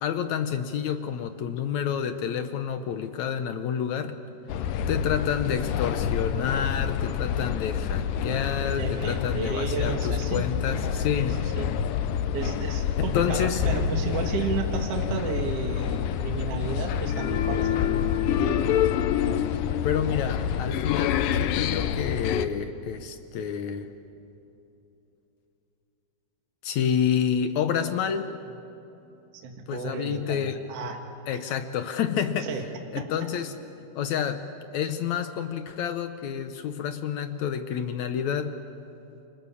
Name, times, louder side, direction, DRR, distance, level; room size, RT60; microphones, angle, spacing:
voice 1, 0.0-4.1 4.9-11.4 13.0-13.6 19.8-23.9 26.6-28.3 29.7-30.6 31.3-32.5 32.9-33.6 34.0-34.5 34.7-38.6, left 8 dB, 70° left, 9 dB, 2.0 m, -29 dB
sound 1, 4.5-22.5, left 8 dB, 85° left, 2.6 m, -27 dB
voice 2, 8.7-10.5 11.4-11.7 12.3-18.7 29.4-31.0 32.4-32.7 32.9-33.3, right 5 dB, 50° right, 3 dB, 2.5 m, -33 dB
29.0 x 26.0 x 7.0 m, 2.8 s
omnidirectional pair, 3.8 m